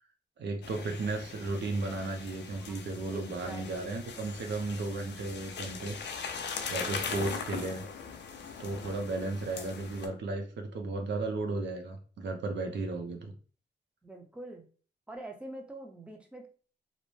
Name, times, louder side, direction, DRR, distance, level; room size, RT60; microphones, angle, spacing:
voice 1, 0.4-6.0 6.7-7.8 8.6-13.3, right 3 dB, 85° right, 4 dB, 0.6 m, -34 dB
sound 1, 0.6-10.1, left 6 dB, 90° left, 0.4 m, -40 dB
voice 2, 3.1-3.9 7.1-7.5 9.5-9.7 14.0-14.7 15.1-16.5, right 1 dB, 5° right, 2 dB, 0.6 m, -45 dB
2.6 x 2.1 x 3.1 m, 0.40 s
wide cardioid pair, 95°, 18 cm